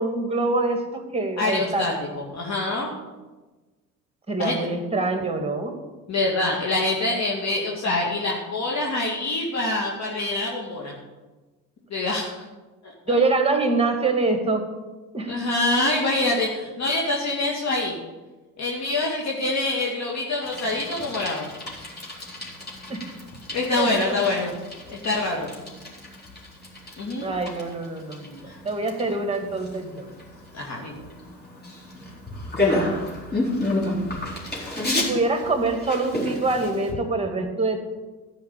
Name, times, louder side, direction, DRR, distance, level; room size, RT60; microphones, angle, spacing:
voice 1, 0.0-1.9 4.3-5.8 13.1-14.7 15.1-15.4 22.9-23.0 23.8-23.9 27.2-30.1 35.0-37.8, right 3 dB, 15° right, 5 dB, 2.7 m, -25 dB
voice 2, 1.4-3.0 4.4-4.7 6.1-10.9 11.9-12.5 12.8-12.9 15.3-18.0 18.6-21.5 23.5-24.5 24.9-25.5 27.0-27.3 28.4-28.6 30.5-30.9, left 2 dB, 35° left, -2 dB, 2.4 m, -25 dB
Bicycle, 20.4-36.9, left 1 dB, 20° left, 4.4 m, -31 dB
14.5 x 5.9 x 8.6 m, 1.2 s
figure-of-eight pair, 60°, 45 cm